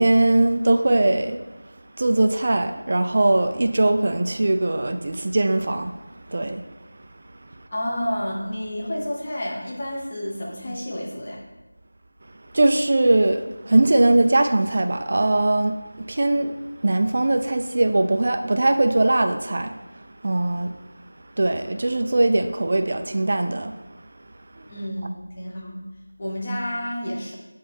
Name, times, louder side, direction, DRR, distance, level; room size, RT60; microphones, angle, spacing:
voice 1, 0.0-1.4 2.0-5.9 6.3-6.7 12.5-16.5 16.8-19.8 20.2-20.8 21.4-23.7 24.6-24.7, right 2 dB, 40° right, 7 dB, 0.4 m, -20 dB
voice 2, 7.7-11.4 24.7-25.8 26.2-27.4, equal, 30° left, -3 dB, 1.2 m, -30 dB
7.9 x 4.3 x 3.5 m, 1.1 s
figure-of-eight pair, 175°, 0 cm